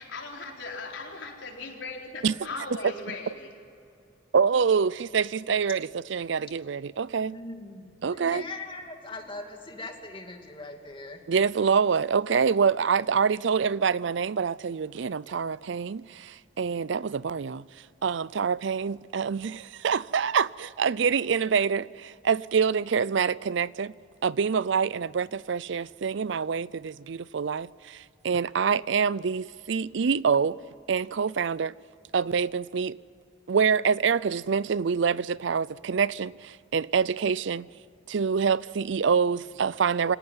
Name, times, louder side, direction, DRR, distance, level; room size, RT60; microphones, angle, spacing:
voice 1, 0.0-3.5, left 3 dB, 75° left, 4.3 m, -38 dB
voice 2, 4.3-7.4 8.0-8.4 11.3-17.6 18.0-23.9 24.2-30.6 30.9-31.7 32.1-33.0 33.5-37.7 38.1-40.2, right 6 dB, 65° right, 0.5 m, -26 dB
voice 3, 7.1-11.2, left 2 dB, 25° left, 2.6 m, -40 dB
26.0 x 18.0 x 9.5 m
head